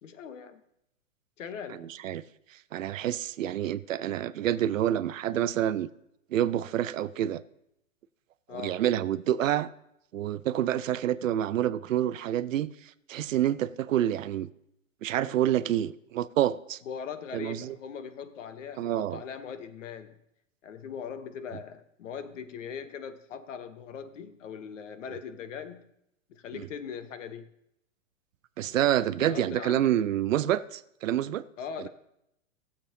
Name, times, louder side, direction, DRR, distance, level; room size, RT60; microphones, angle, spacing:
voice 1, 0.0-0.6 1.4-1.9 8.5-8.8 16.8-20.2 20.6-25.9 26.3-27.5 28.6-28.9 29.2-30.0 31.6-31.9, left 7 dB, 70° left, 1.1 m, -40 dB
voice 2, 1.8-2.2 2.7-5.9 6.3-7.4 8.5-9.7 10.1-12.7 13.1-14.5 15.0-16.8 17.3-17.8 18.8-19.2 26.5-26.6 28.6-31.4 31.8-31.9, right 11 dB, 75° right, 0.6 m, -28 dB
18.0 x 7.2 x 2.8 m
hypercardioid pair, 120°, 39 cm